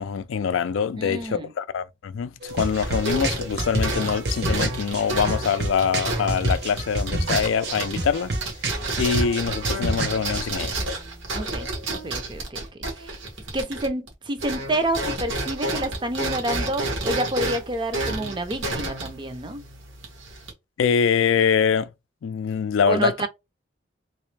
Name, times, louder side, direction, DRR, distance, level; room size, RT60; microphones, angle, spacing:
voice 1, 0.0-8.3 9.0-10.8 20.8-21.9 22.2-23.1, left 6 dB, 90° left, 0.4 m, -24 dB
voice 2, 1.0-1.5 11.3-12.6 13.0-13.2 13.5-19.6 22.9-23.3, right 1 dB, 25° right, 0.5 m, -28 dB
sound 1, 2.4-10.4, right 2 dB, 55° right, 0.9 m, -29 dB
sound 2, 2.5-14.1 14.4-20.5, right 2 dB, 80° right, 1.3 m, -30 dB
3.3 x 3.0 x 3.2 m
head